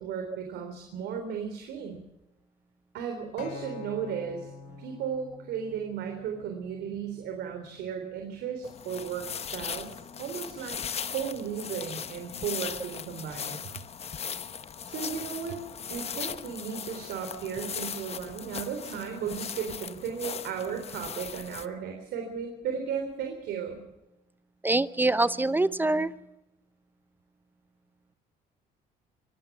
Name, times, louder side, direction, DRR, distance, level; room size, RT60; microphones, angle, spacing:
voice 1, 0.0-2.0 2.9-4.5 4.8-13.7 14.8-15.6 15.9-23.8, right 7 dB, 80° right, 5 dB, 3.7 m, -35 dB
Acoustic guitar, 3.4-7.6 8.5-8.6, left 5 dB, 85° left, 5.0 m, -47 dB
sound 1, 8.6-21.7, left 7 dB, 40° left, 1.1 m, -38 dB
voice 2, 24.6-26.1, right 2 dB, 10° right, 15 dB, 0.7 m, -24 dB
25.0 x 17.5 x 6.1 m, 0.92 s
cardioid pair, 110°, 17 cm